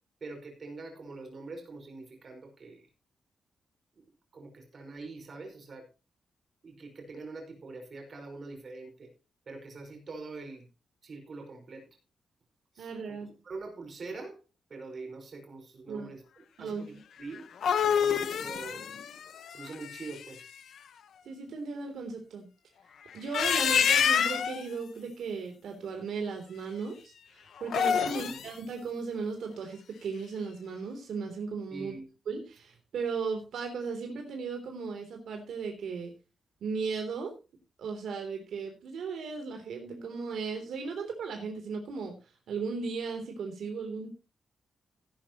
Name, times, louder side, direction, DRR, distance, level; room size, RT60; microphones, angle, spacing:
voice 1, 0.2-2.8 4.3-5.9 6.6-9.1 9.5-10.7 11.0-11.9 12.8-12.9 13.2-14.4 14.7-16.2 16.6-17.5 17.8-19.0 19.5-20.5 28.1-28.4 31.7-32.1, right 3 dB, 40° right, 5.2 m, -44 dB
voice 2, 12.8-13.3 15.9-16.1 16.6-17.0 21.2-22.5 23.1-32.0 32.2-36.1 36.6-37.3 37.8-42.1 42.5-44.1, right 5 dB, 80° right, 3.4 m, -36 dB
sound 1, 17.3-20.4 23.1-24.6 27.6-28.5, left 8 dB, 70° left, 1.3 m, -27 dB
16.0 x 11.5 x 3.1 m
wide cardioid pair, 160°, 0 cm